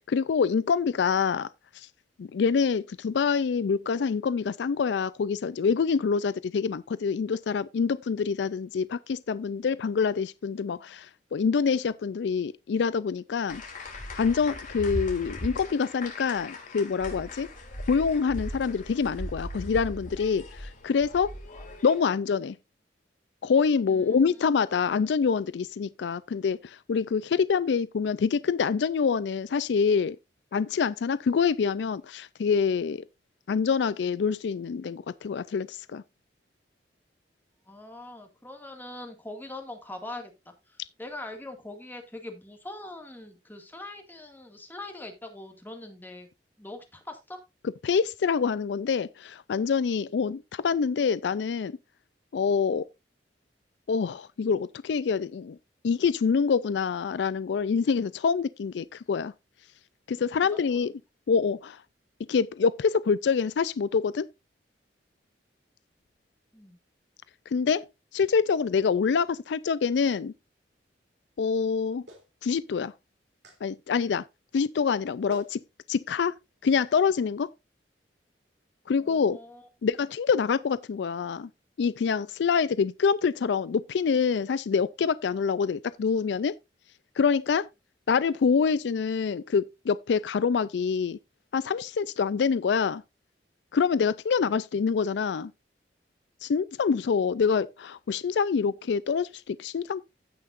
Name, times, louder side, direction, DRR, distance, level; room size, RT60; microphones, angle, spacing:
voice 1, 0.1-1.5 1.7-1.9 2.2-13.6 14.2-17.5 17.9-21.3 21.8-22.6 23.4-30.2 30.5-33.0 33.5-36.0 47.8-51.8 52.3-52.9 53.9-55.6 55.8-59.3 60.1-60.9 61.3-61.8 62.3-64.3 67.5-67.9 68.1-70.3 71.4-72.0 72.4-72.9 73.6-74.2 74.5-75.6 75.9-76.3 76.6-77.5 78.9-79.4 79.8-81.5 81.8-86.6 87.2-87.7 88.1-91.2 91.5-93.0 93.7-95.5 96.4-100.0, left 5 dB, 70° left, 0.4 m, -26 dB
sound 1, 13.5-22.0, left 1 dB, 45° left, 2.9 m, -38 dB
voice 2, 23.9-24.6 37.7-46.3 46.6-47.4 60.5-60.8 66.5-66.8 79.0-79.7, left 2 dB, 10° left, 2.0 m, -42 dB
Clapping, 72.1-72.3 73.4-73.6 74.9-75.0 75.3-75.5 76.6-76.8, right 1 dB, 80° right, 3.3 m, -46 dB
15.5 x 5.8 x 2.5 m
head